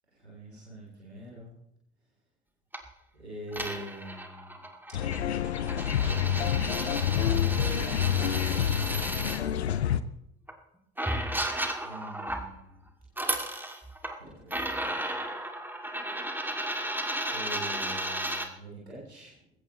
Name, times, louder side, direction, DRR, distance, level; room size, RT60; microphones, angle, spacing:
voice 1, 0.1-1.5 3.1-4.6 6.7-8.5 11.8-12.9 14.2-15.2 17.3-19.5, equal, 90° right, -5 dB, 3.4 m, -44 dB
sound 1, 2.7-2.9 3.5-9.4 10.5-10.6 11.0-12.5 13.0-14.2 14.5-18.5, right 1 dB, 5° right, 2.5 m, -34 dB
sound 2, 4.9-10.0, left 9 dB, 85° left, 0.6 m, -28 dB
20.5 x 16.0 x 3.1 m, 0.78 s
figure-of-eight pair, 45°, 32 cm